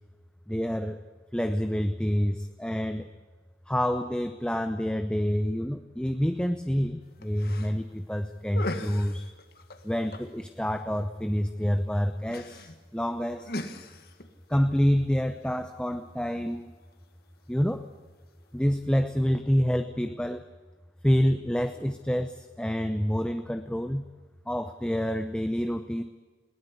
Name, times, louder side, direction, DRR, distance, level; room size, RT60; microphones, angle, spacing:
voice 1, 0.5-1.0 1.3-3.1 3.7-9.2 9.8-13.5 14.5-16.7 17.5-17.9 18.5-20.4 21.0-24.1 24.5-26.0, equal, 5° left, 8 dB, 0.7 m, -27 dB
sound 1, 7.0-18.6, left 1 dB, 55° left, 1.8 m, -44 dB
21.0 x 17.5 x 8.3 m, 1.4 s
head